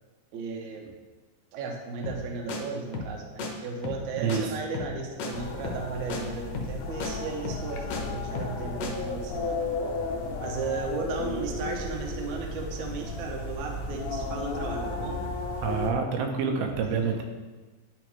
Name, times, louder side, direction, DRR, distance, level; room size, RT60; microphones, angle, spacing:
voice 1, 0.3-0.9 1.5-9.6 10.4-15.3 17.0-17.2, right 4 dB, 70° right, 1 dB, 2.0 m, -35 dB
sound 1, 2.0-2.2 2.5-2.6 2.9-3.1 3.4-3.5 3.8-4.0 4.3-4.4 4.7-4.9 5.2-5.3 5.6-5.8 6.1-6.2 6.5-6.7 7.0-7.1 7.4-8.0 8.3-8.6 8.8-8.9, left 3 dB, 70° left, 1.6 m, -34 dB
voice 2, 4.2-4.5 15.6-17.2, right 6 dB, 90° right, 3 dB, 2.8 m, -27 dB
sound 2, 5.3-15.9, left 3 dB, 90° left, 1.5 m, -34 dB
11.0 x 5.0 x 3.1 m, 1.3 s
omnidirectional pair, 4.3 m